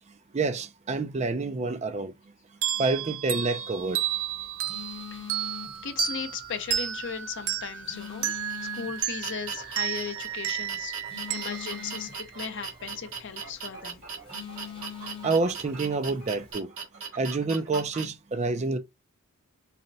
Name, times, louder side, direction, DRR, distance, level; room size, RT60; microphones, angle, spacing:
voice 1, 0.3-2.1 2.8-4.0 15.2-16.7 17.2-18.8, right 3 dB, 30° right, 0.4 m, -28 dB
sound 1, 2.6-12.9, right 10 dB, 75° right, 0.6 m, -33 dB
Telephone, 3.7-16.5, left 8 dB, 25° left, 0.9 m, -46 dB
voice 2, 5.8-8.5 8.8-11.0 11.3-14.0, left 6 dB, 55° left, 0.6 m, -37 dB
sound 2, 8.0-18.0, right 6 dB, 60° right, 2.1 m, -39 dB
4.1 x 2.1 x 3.9 m
head